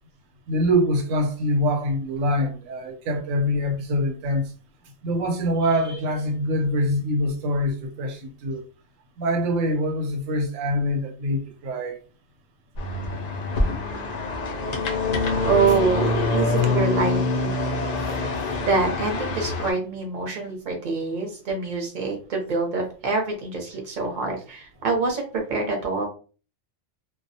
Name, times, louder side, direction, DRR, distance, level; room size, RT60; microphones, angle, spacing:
voice 1, 0.5-4.5 5.0-8.6 9.2-12.0 17.5-17.7, equal, 90° right, 1.0 m, -24 dB
sound 1, 12.8-19.7, left 3 dB, 80° left, 0.3 m, -25 dB
voice 2, 15.4-17.5 18.6-26.1, right 4 dB, 45° right, 0.7 m, -25 dB
2.3 x 2.0 x 2.6 m
omnidirectional pair, 1.3 m